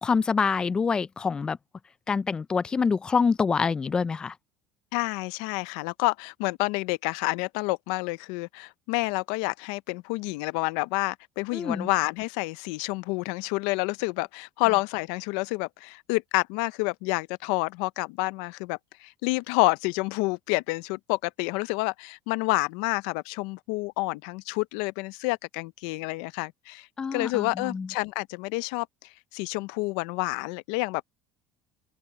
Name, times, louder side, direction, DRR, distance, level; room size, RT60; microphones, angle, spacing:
voice 1, 0.0-1.6 2.1-4.3 11.5-11.9 27.0-27.9, left 5 dB, 20° left, 0.5 m, -26 dB
voice 2, 4.9-28.9 29.3-31.2, left 24 dB, 80° left, 0.6 m, -29 dB
open air
supercardioid pair, 115°, 4 cm